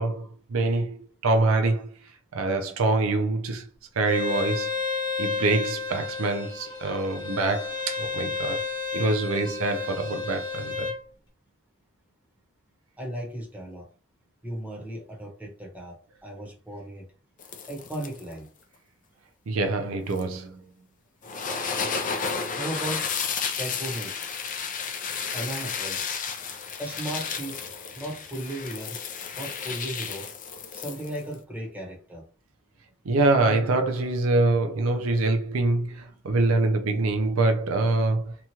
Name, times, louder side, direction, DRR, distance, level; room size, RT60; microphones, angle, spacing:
voice 1, 0.0-1.9 2.3-3.7 4.0-4.7 5.2-8.6 8.9-10.9 19.5-20.6 33.0-38.4, right 2 dB, 80° right, 0.5 m, -25 dB
Bowed string instrument, 4.0-11.0, left 4 dB, 20° left, 0.8 m, -31 dB
voice 2, 13.0-13.9 14.4-15.9 16.2-17.0 17.7-18.5 22.5-23.1 23.6-24.1 24.8-24.9 25.3-26.0 26.8-27.6 27.9-29.0 29.4-30.3 30.7-32.2, right 1 dB, 10° right, 1.0 m, -35 dB
sound 1, 17.4-18.3 20.1-20.2 21.2-31.3, left 6 dB, 40° left, 0.4 m, -32 dB
3.0 x 2.3 x 2.8 m
head